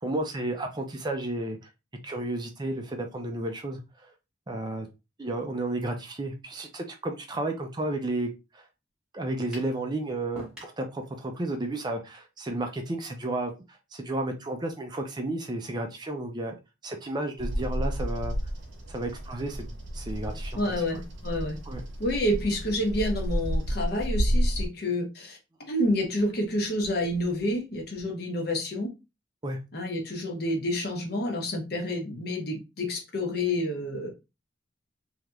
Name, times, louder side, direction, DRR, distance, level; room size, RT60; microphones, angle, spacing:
voice 1, 0.0-1.7 2.0-4.1 4.5-4.9 5.2-8.7 9.1-16.5 16.8-18.4 18.9-20.8 21.7-21.8 29.4-29.6, right 2 dB, 20° right, 0.4 m, -32 dB
sound 1, 9.5-9.8 10.4-10.8, equal, 5° right, 1.1 m, -43 dB
Bird vocalization bird call bird song, 17.4-24.7, equal, 70° right, 0.8 m, -30 dB
voice 2, 20.5-21.6 22.0-25.4 25.7-28.9 29.7-34.1, left 1 dB, 55° left, 1.0 m, -29 dB
3.3 x 2.8 x 2.4 m
head